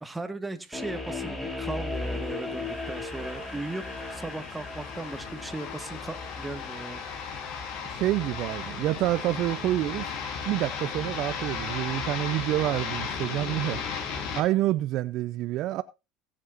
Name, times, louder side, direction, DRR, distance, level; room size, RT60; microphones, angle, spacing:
voice 1, 0.0-3.8 4.1-7.1, right 2 dB, 10° right, 1.7 m, -37 dB
sound 1, 0.7-11.8, left 3 dB, 5° left, 5.9 m, -39 dB
sound 2, 1.9-14.4, left 6 dB, 55° left, 4.1 m, -36 dB
voice 2, 7.9-10.1 10.5-13.8 14.4-15.8, right 15 dB, 55° right, 0.6 m, -27 dB
22.0 x 7.6 x 2.6 m
supercardioid pair, 115°, 0 cm